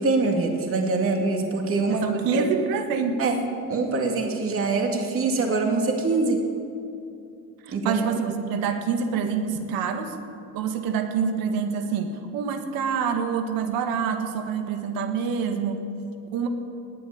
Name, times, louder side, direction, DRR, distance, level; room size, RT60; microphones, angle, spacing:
voice 1, 0.0-2.4 3.2-3.4 3.7-6.4 7.7-8.0, right 3 dB, 40° right, 2 dB, 2.4 m, -24 dB
voice 2, 1.9-3.2 7.6-10.2 10.5-15.8 16.3-16.5, right 6 dB, 80° right, 6 dB, 1.8 m, -26 dB
18.5 x 8.1 x 9.7 m, 2.6 s
cardioid pair, 115°, 34 cm